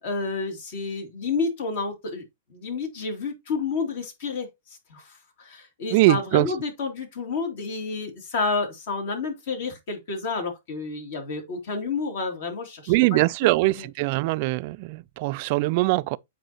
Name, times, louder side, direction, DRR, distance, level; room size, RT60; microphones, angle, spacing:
voice 1, 0.0-2.2 2.5-4.5 4.9-13.9, left 4 dB, 60° left, 2.7 m, -30 dB
voice 2, 5.9-6.5 12.9-16.2, right 21 dB, 50° right, 0.3 m, -22 dB
8.0 x 4.9 x 2.9 m
hypercardioid pair, 140°, 0 cm